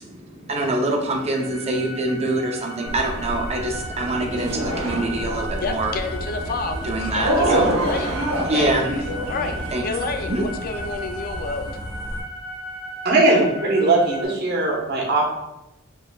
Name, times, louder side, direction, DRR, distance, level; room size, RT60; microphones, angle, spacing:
voice 1, 0.0-5.9 6.8-7.9 8.4-9.3 9.7-9.8 10.3-10.9, right 2 dB, 30° right, 2 dB, 0.6 m, -25 dB
sound 1, 1.1-14.2, right 1 dB, ahead, 1.3 m, -36 dB
sound 2, 2.8-12.2, equal, 20° left, 1.0 m, -34 dB
sound 3, 4.4-5.6 7.2-9.8, right 1 dB, 85° right, 0.9 m, -24 dB
voice 2, 5.6-8.1 8.4-8.7 9.3-11.8, left 4 dB, 45° left, 6 dB, 0.4 m, -30 dB
voice 3, 13.0-15.3, right 2 dB, 55° right, -3 dB, 1.0 m, -19 dB
4.9 x 3.3 x 2.3 m, 0.89 s
head